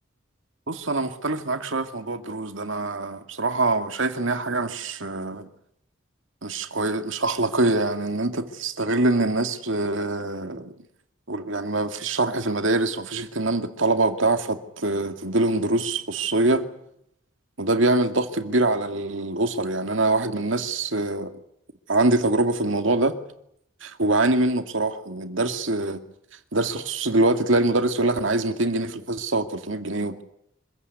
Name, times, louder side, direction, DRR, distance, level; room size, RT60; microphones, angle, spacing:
voice 1, 0.7-5.5 6.4-10.7 11.3-16.7 17.6-21.3 21.9-23.2 23.8-26.0 26.5-30.2, right 2 dB, 65° right, 2.3 m, -24 dB
25.5 x 16.0 x 9.7 m
head